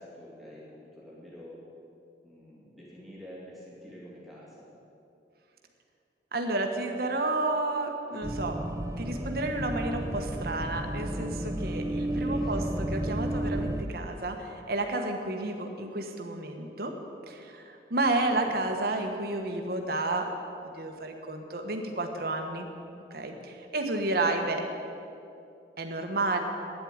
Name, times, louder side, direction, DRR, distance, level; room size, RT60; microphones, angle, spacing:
voice 1, 0.0-1.6 2.2-4.7 11.9-12.8 18.3-18.5, equal, ahead, -7 dB, 2.6 m, -48 dB
voice 2, 6.3-8.6 9.0-16.9 17.3-20.3 20.6-22.7 23.1-24.6 25.8-26.4, right 2 dB, 55° right, 4 dB, 1.3 m, -31 dB
sound 1, 8.2-13.8, right 1 dB, 15° right, 0.5 m, -32 dB
9.5 x 8.4 x 9.5 m, 2.6 s
head